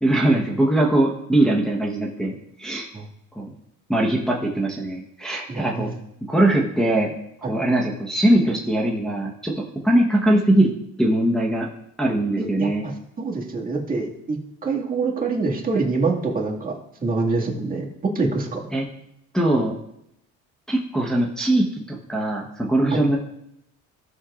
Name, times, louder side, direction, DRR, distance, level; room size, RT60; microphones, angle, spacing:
voice 1, 0.0-2.9 3.4-3.5 3.9-5.9 6.3-7.1 7.5-10.7 11.0-11.7 12.0-12.8 18.7-18.8 19.3-19.8 20.7-23.2, right 1 dB, ahead, -3 dB, 1.1 m, -21 dB
voice 2, 5.5-5.9 7.4-7.6 12.4-12.9 13.2-16.7 17.0-18.6 22.9-23.0, right 3 dB, 25° right, -2 dB, 2.1 m, -25 dB
16.0 x 6.4 x 2.5 m, 0.81 s
cardioid pair, 100°, 33 cm